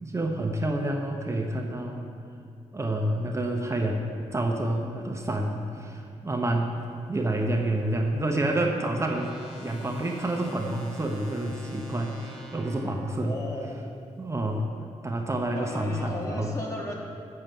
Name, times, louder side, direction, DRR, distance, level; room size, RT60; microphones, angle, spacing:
voice 1, 0.0-2.0 2.7-6.8 7.1-13.4 14.2-14.7 15.0-16.5, right 1 dB, 25° right, 1 dB, 0.8 m, -28 dB
sound 1, 7.2-14.3, equal, 5° left, 1.9 m, -45 dB
voice 2, 13.2-13.7 15.6-17.0, left 1 dB, 25° left, -2 dB, 1.9 m, -35 dB
6.7 x 6.6 x 7.6 m, 2.4 s
cardioid pair, 80°, 12 cm